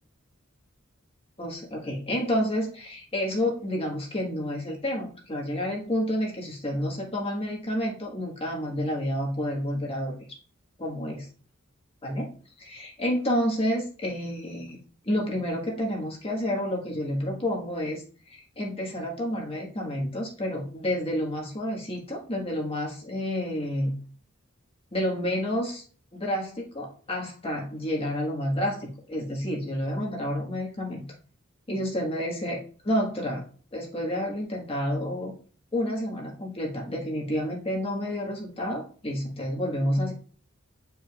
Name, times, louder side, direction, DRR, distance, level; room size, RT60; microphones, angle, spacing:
voice 1, 1.4-10.2 10.8-11.3 12.0-12.3 12.6-14.8 15.0-23.9 24.9-25.8 26.1-31.0 31.7-33.4 33.7-35.3 35.7-40.1, equal, 30° left, -1 dB, 1.5 m, -29 dB
8.7 x 4.8 x 2.4 m, 0.41 s
head